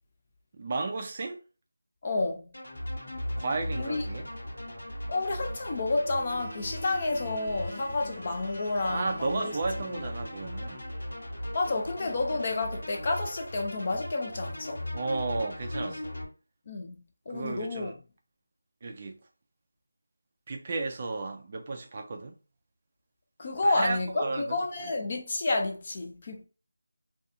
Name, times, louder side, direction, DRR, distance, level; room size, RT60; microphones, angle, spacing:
voice 1, 0.6-1.4 3.4-4.3 8.8-10.9 14.9-16.1 17.3-17.9 18.8-19.2 20.5-22.3 23.6-24.6, right 3 dB, 30° right, 0.3 m, -33 dB
voice 2, 2.0-2.5 3.8-4.0 5.1-9.6 9.9-10.0 11.5-14.8 16.7-18.0 23.4-26.4, left 2 dB, 30° left, 0.5 m, -30 dB
sound 1, 2.5-16.2, left 1 dB, 75° left, 1.1 m, -38 dB
Bowed string instrument, 5.9-11.5, right 2 dB, 10° left, 0.9 m, -48 dB
2.4 x 2.3 x 2.6 m
figure-of-eight pair, 170°, 0 cm